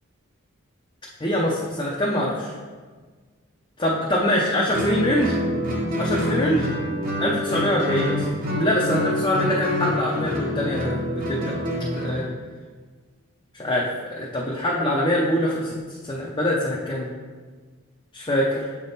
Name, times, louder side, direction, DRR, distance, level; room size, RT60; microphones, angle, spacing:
voice 1, 1.2-2.5 3.8-5.3 6.0-6.7 7.2-8.2 8.5-11.5 11.9-12.2 13.6-15.8 16.0-17.1 18.1-18.6, left 1 dB, 20° left, -5 dB, 0.6 m, -24 dB
Guitar, 4.7-12.2, left 1 dB, 40° right, 1.0 m, -26 dB
6.7 x 3.5 x 4.1 m, 1.4 s
head